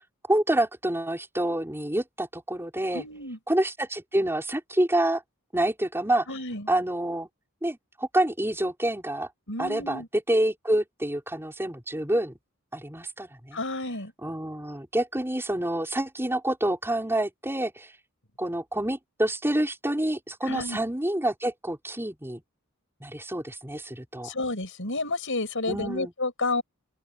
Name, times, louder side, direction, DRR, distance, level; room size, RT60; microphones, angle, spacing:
voice 1, 0.3-3.0 3.5-5.2 5.5-6.3 6.7-7.3 7.6-9.3 9.6-12.4 12.7-13.6 14.2-17.9 18.4-22.4 23.0-24.3 25.7-26.1, right 1 dB, 10° right, 4.5 m, -27 dB
voice 2, 2.9-3.4 6.3-6.7 9.5-10.1 13.5-14.1 20.4-20.8 24.2-26.6, left 2 dB, 60° left, 7.7 m, -30 dB
open air
head